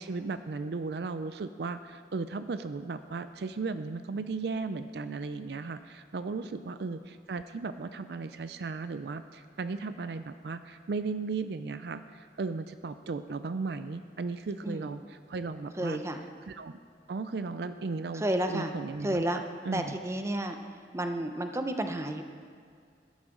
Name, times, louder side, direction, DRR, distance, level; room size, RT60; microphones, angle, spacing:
voice 1, 0.0-16.0 16.5-16.8 17.1-20.0, right 4 dB, 65° right, 11 dB, 0.4 m, -36 dB
voice 2, 15.8-16.3 18.1-18.7 19.0-19.4 19.7-20.6 20.9-22.2, right 1 dB, 15° right, 6 dB, 0.7 m, -31 dB
14.5 x 12.0 x 3.8 m, 2.2 s
head